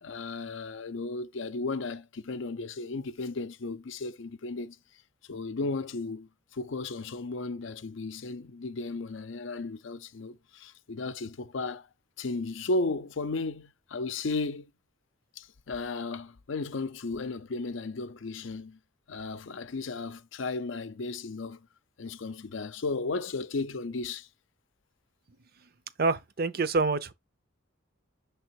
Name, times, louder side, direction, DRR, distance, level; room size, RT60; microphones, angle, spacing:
voice 1, 0.0-4.8 5.3-11.9 12.2-14.7 15.4-18.8 19.1-21.7 22.0-24.3, left 3 dB, 65° left, 0.6 m, -35 dB
voice 2, 26.0-27.1, right 3 dB, 50° right, 0.6 m, -26 dB
6.7 x 3.4 x 4.6 m
head